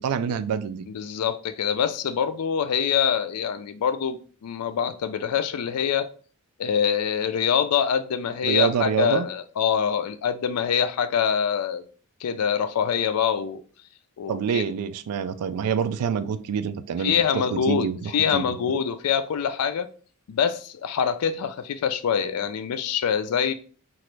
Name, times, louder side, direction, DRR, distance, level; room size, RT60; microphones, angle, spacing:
voice 1, 0.0-0.9 8.4-9.3 14.3-18.4, right 7 dB, 85° right, 0.3 m, -26 dB
voice 2, 0.9-6.1 6.6-11.8 12.2-13.6 14.2-14.6 17.0-19.9 20.3-23.5, left 7 dB, 90° left, 0.4 m, -25 dB
3.0 x 2.5 x 3.2 m
head